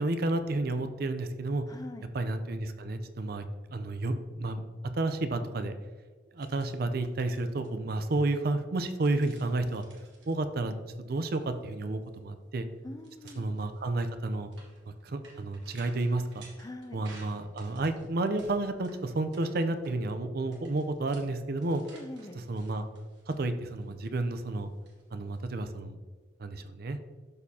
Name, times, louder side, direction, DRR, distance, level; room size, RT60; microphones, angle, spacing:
voice 1, 0.0-1.6 2.1-3.4 3.7-4.6 5.0-5.7 6.3-9.8 10.3-10.8 11.1-12.7 13.4-14.5 15.0-16.5 16.9-21.8 22.5-22.9 23.3-24.7 25.1-26.0 26.4-27.0, right 2 dB, 55° right, 9 dB, 0.5 m, -31 dB
voice 2, 1.7-2.1 12.8-13.5 16.6-17.0 21.9-22.4, left 2 dB, 20° left, 8 dB, 0.4 m, -43 dB
sound 1, 6.4-6.7 7.0-7.7 8.8-10.3 11.2-11.5 11.7-11.8 12.1-12.2 13.0-20.2 20.5-25.4, right 2 dB, 70° right, 1.6 m, -55 dB
12.0 x 4.4 x 2.8 m, 1.4 s
head